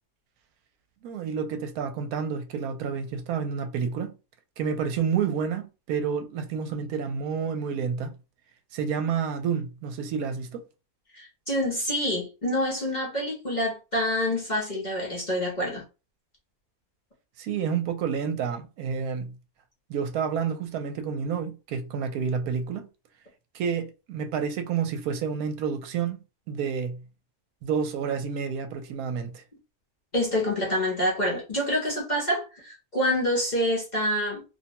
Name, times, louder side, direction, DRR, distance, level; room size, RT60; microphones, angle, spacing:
voice 1, 1.0-4.1 4.6-8.1 8.7-10.6 17.4-19.4 19.9-22.9 23.5-26.2 26.5-27.0 27.6-29.4, right 6 dB, 75° right, 1.0 m, -29 dB
voice 2, 11.1-15.8 30.1-34.4, equal, 40° left, 0.8 m, -27 dB
2.6 x 2.1 x 2.8 m
omnidirectional pair, 1.6 m